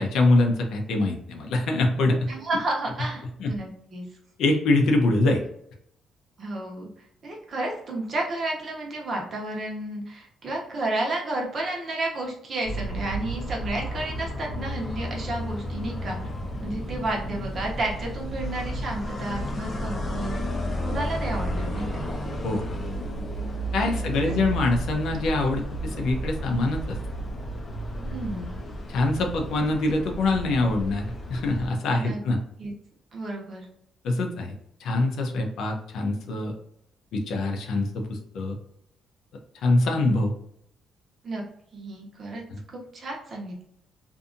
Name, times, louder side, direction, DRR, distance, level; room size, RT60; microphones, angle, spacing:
voice 1, 0.0-2.3 3.4-3.5 4.4-5.4 22.4-22.6 23.7-27.0 28.9-32.4 34.0-34.5 34.8-36.5 37.1-38.6 39.6-40.3 42.5-42.6, left 2 dB, 80° left, 2 dB, 0.6 m, -24 dB
voice 2, 2.3-4.1 6.4-6.9 7.2-16.2 16.6-20.4 20.8-22.1 23.9-24.3 28.0-28.6 32.0-32.2 32.6-32.7 33.1-33.7 41.2-41.4 41.7-42.4 42.7-43.6, right 2 dB, 50° right, -1 dB, 1.0 m, -32 dB
sound 1, 12.6-31.7, equal, 35° left, 0.7 m, -32 dB
2.6 x 2.5 x 2.5 m, 0.72 s
cardioid pair, 90°, 0 cm